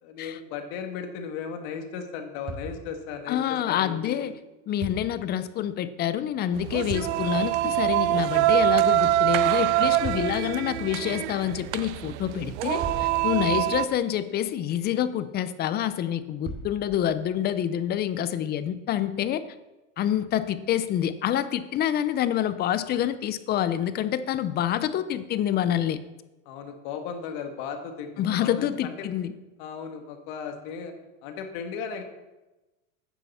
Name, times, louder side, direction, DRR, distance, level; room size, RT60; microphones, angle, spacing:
voice 1, 0.0-3.4 3.7-4.3 13.6-13.8 26.5-29.1 29.6-30.9 31.2-32.0, left 6 dB, 55° left, 5 dB, 2.0 m, -36 dB
sound 1, 2.5-3.2 4.8-5.4 6.9-7.5 10.0-10.6 12.8-14.2 16.4-17.3, right 3 dB, 30° right, 2.9 m, -39 dB
voice 2, 3.3-4.3 4.7-19.4 20.0-26.0 28.2-29.3, left 11 dB, 25° left, 13 dB, 0.6 m, -27 dB
sound 2, 6.5-13.9, right 15 dB, 60° right, 0.6 m, -24 dB
9.9 x 6.8 x 7.1 m, 1.1 s
supercardioid pair, 140°, 39 cm